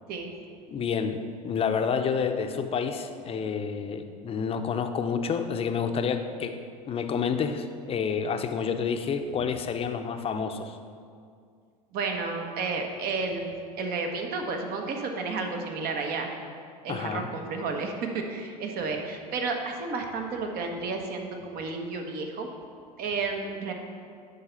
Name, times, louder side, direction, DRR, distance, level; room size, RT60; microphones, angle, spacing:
voice 1, 0.7-1.2 1.4-6.6 6.9-10.8 16.9-17.3, left 6 dB, 30° left, 7 dB, 0.7 m, -29 dB
voice 2, 11.9-16.3 16.8-22.5 23.0-23.7, right 4 dB, 50° right, 3 dB, 1.2 m, -32 dB
10.5 x 4.0 x 5.7 m, 2.2 s
hypercardioid pair, 80°, 20 cm